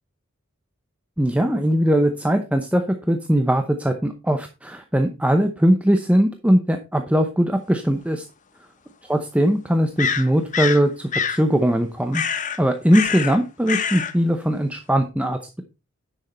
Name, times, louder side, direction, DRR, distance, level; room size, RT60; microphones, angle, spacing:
voice 1, 1.2-8.2 9.0-12.2 12.6-15.6, equal, 5° right, 6 dB, 0.8 m, -20 dB
sound 1, 7.9-8.0 10.0-10.8 11.1-11.4 12.1-12.6 12.9-13.4 13.7-14.1, left 6 dB, 40° left, 0.8 m, -25 dB
9.9 x 6.3 x 4.2 m, 0.28 s
head